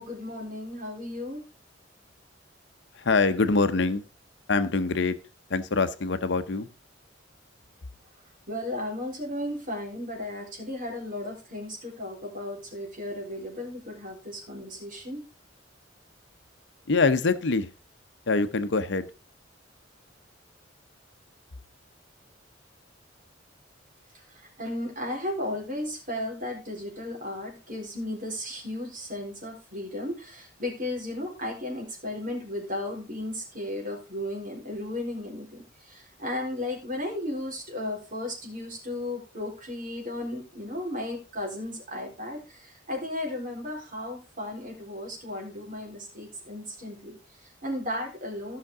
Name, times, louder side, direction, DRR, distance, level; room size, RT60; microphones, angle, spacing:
voice 1, 0.0-1.4 8.5-15.2 24.3-48.6, left 1 dB, 45° right, 0 dB, 3.9 m, -35 dB
voice 2, 2.9-4.0 4.5-5.2 5.5-6.7 16.9-17.7 18.3-19.1, left 3 dB, 65° left, 11 dB, 0.7 m, -24 dB
15.5 x 5.8 x 3.6 m, 0.31 s
head